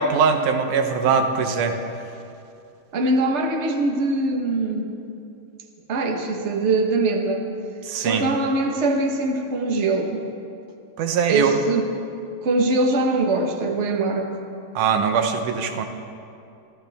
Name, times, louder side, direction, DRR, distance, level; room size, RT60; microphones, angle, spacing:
voice 1, 0.0-1.7 7.9-8.3 11.0-11.5 14.8-15.9, right 6 dB, 90° right, 6 dB, 2.5 m, -21 dB
voice 2, 2.9-4.9 5.9-7.4 8.0-10.2 11.3-11.9 12.4-14.3, right 2 dB, 70° right, 2 dB, 0.6 m, -22 dB
25.5 x 14.5 x 3.6 m, 2.6 s
omnidirectional pair, 3.4 m